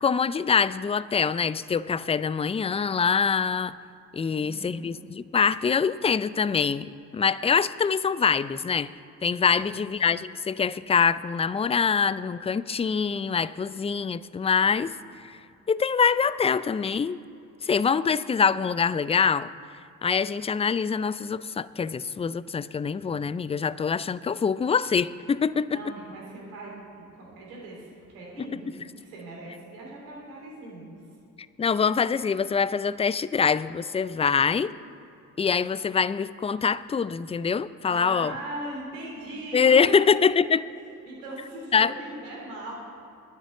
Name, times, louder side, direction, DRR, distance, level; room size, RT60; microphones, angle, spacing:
voice 1, 0.0-3.8 4.1-8.9 9.2-14.9 15.2-15.3 15.7-17.2 17.6-19.5 20.0-25.8 28.4-28.7 31.6-34.7 35.4-38.3 39.5-40.7 41.7-41.9, left 6 dB, 15° left, 17 dB, 0.4 m, -24 dB
voice 2, 4.2-4.9 9.5-9.9 25.7-31.0 37.9-40.0 41.0-42.7, right 2 dB, 85° right, -2 dB, 3.3 m, -40 dB
10.5 x 7.8 x 8.1 m, 2.7 s
hypercardioid pair, 50°, 41 cm